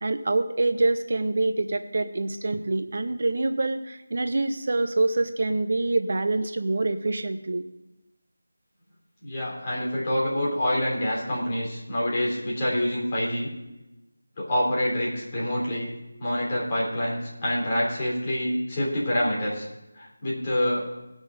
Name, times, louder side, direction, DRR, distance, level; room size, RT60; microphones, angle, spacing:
voice 1, 0.0-7.6, right 2 dB, 50° right, 9 dB, 0.8 m, -26 dB
voice 2, 9.2-13.5 14.4-15.9 16.2-19.7 19.9-20.8, equal, 25° left, -5 dB, 3.6 m, -26 dB
18.0 x 6.3 x 5.0 m, 0.98 s
figure-of-eight pair, 165°, 0 cm